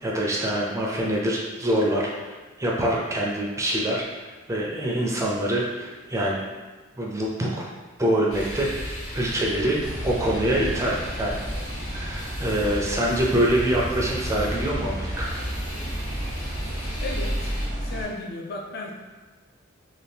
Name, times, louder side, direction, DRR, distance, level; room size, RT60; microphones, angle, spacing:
voice 1, 0.0-2.3 2.6-4.0 4.5-6.5 7.0-7.6 8.0-11.4 11.9-15.3, right 1 dB, 15° right, -3 dB, 0.4 m, -25 dB
sound 1, 8.3-17.7, equal, 80° left, 1.1 m, -35 dB
sound 2, 9.8-18.0, equal, 20° left, 0.9 m, -33 dB
voice 2, 17.0-17.5 17.8-18.9, left 2 dB, 50° left, 0 dB, 0.4 m, -34 dB
2.7 x 2.3 x 3.4 m, 1.3 s
head